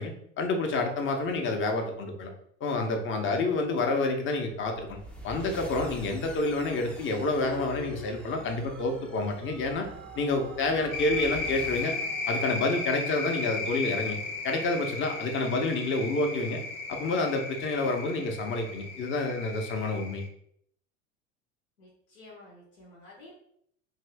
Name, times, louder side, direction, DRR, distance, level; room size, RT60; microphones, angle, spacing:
voice 1, 0.0-2.3 2.6-5.0 5.2-9.9 10.2-12.0 12.3-14.2 14.4-16.6 16.9-20.2, left 2 dB, 30° left, 4 dB, 0.7 m, -28 dB
sound 1, 4.5-11.9, right 1 dB, 5° left, 0.3 m, -46 dB
sound 2, 7.4-13.5, right 2 dB, 90° right, 0.6 m, -46 dB
sound 3, 10.9-20.3, left 3 dB, 65° left, 0.8 m, -35 dB
voice 2, 21.8-23.4, left 2 dB, 85° left, -4 dB, 1.2 m, -51 dB
2.7 x 2.7 x 3.3 m, 0.68 s
hypercardioid pair, 90°, 40 cm